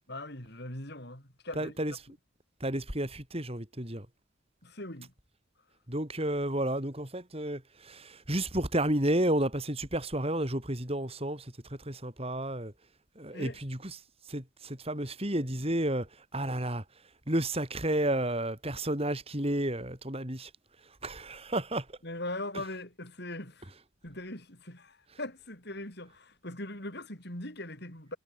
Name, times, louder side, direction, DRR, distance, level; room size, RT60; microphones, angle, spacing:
voice 1, 0.1-2.0 4.6-5.1 13.3-13.6 22.0-23.7 24.0-28.2, left 1 dB, 55° left, 7.6 m, -40 dB
voice 2, 1.6-1.9 2.6-4.1 5.9-11.4 11.9-12.7 13.2-14.0 14.3-16.1 16.3-16.8 17.3-20.5 21.0-21.8, right 1 dB, 30° right, 4.5 m, -31 dB
head